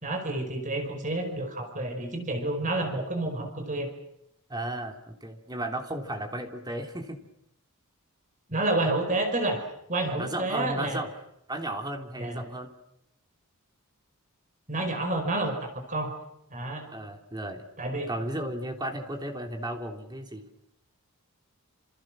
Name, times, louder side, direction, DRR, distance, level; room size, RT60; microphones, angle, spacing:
voice 1, 0.0-3.9 8.5-9.6 9.9-11.0 12.2-12.4 14.7-16.1 16.5-16.9 17.8-18.1, right 2 dB, 35° right, 5 dB, 5.1 m, -29 dB
voice 2, 4.5-7.2 10.2-11.1 11.5-12.7 16.9-17.6 18.1-20.5, right 1 dB, 20° right, 4 dB, 3.2 m, -34 dB
28.5 x 28.0 x 6.3 m, 0.82 s
head